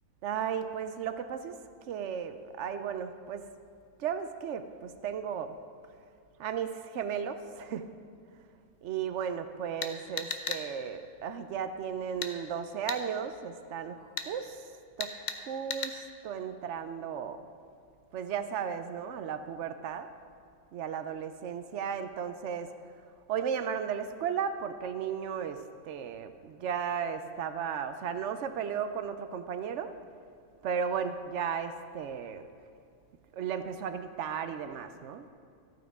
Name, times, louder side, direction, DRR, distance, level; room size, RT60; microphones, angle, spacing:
voice 1, 0.2-1.6 1.9-3.5 4.0-5.5 6.4-7.9 8.8-14.6 15.0-17.4 18.1-20.1 20.7-22.7 23.3-29.9 30.6-32.4 33.3-35.3, right 7 dB, 65° right, 10 dB, 0.9 m, -35 dB
sound 1, 9.8-10.6 12.2-12.3 12.9-13.0 14.2-14.3 15.0-15.4 15.7-15.9, left 5 dB, 50° left, 0.6 m, -34 dB
14.0 x 9.2 x 3.6 m, 2.4 s
omnidirectional pair, 1.5 m